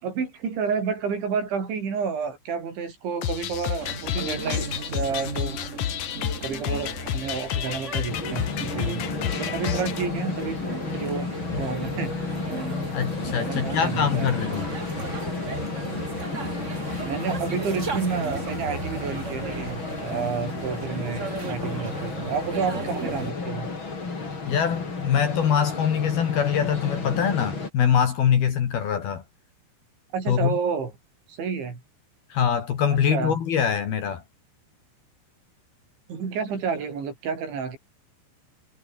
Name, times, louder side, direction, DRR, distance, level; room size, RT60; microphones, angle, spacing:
voice 1, 0.0-5.6 6.4-10.6 10.9-12.3 13.3-14.4 17.0-23.7 30.1-30.9 31.3-31.8 32.9-33.4 36.1-37.8, right 6 dB, 75° right, 8.1 m, -30 dB
sound 1, 3.2-10.0, left 11 dB, 90° left, 1.5 m, -30 dB
sound 2, 3.8-23.3, right 4 dB, 55° right, 0.7 m, -36 dB
sound 3, 8.1-27.7, left 4 dB, 25° left, 4.4 m, -32 dB
voice 2, 12.9-14.7 24.5-29.2 30.3-30.5 32.3-34.2, left 8 dB, 60° left, 4.1 m, -23 dB
omnidirectional pair, 5.3 m